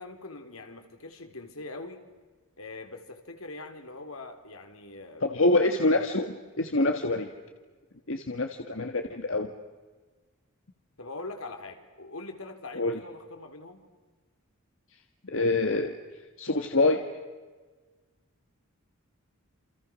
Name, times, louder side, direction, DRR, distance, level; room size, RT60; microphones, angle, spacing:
voice 1, 0.0-2.0 2.6-5.2 5.8-6.0 11.0-13.8, left 2 dB, 85° left, 6 dB, 3.7 m, -42 dB
voice 2, 5.2-7.3 8.1-9.5 12.8-13.0 15.2-16.0 16.4-17.1, left 2 dB, 65° left, 5 dB, 1.7 m, -26 dB
29.0 x 28.5 x 6.4 m, 1.4 s
head